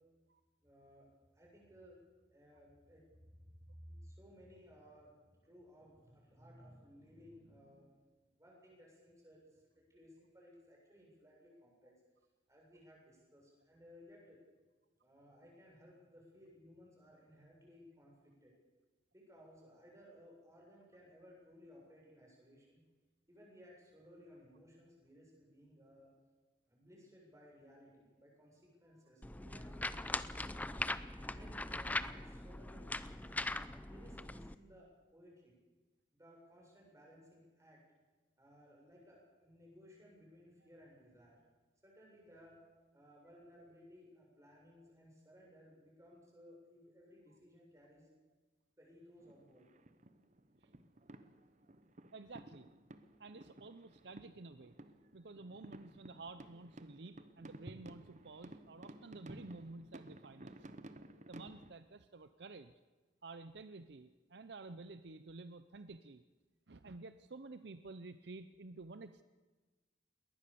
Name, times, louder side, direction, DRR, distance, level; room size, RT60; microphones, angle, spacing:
voice 1, 0.6-2.0 2.3-11.9 12.5-14.4 15.0-18.5 19.1-22.8 23.3-26.1 26.7-30.5 31.2-33.3 33.9-35.6 36.1-37.8 38.4-42.6 42.9-48.1 48.8-49.7, equal, 15° right, -2 dB, 7.2 m, -60 dB
sound 1, 29.2-34.5, left 2 dB, 10° left, 0.6 m, -41 dB
sound 2, 49.2-61.7, right 1 dB, 40° right, 1.1 m, -55 dB
voice 2, 52.1-52.7 53.2-54.7 55.1-60.7 61.3-62.7 63.2-66.2 66.7-69.2, right 3 dB, 60° right, 11 dB, 0.7 m, -51 dB
21.5 x 19.0 x 7.0 m, 1.3 s
head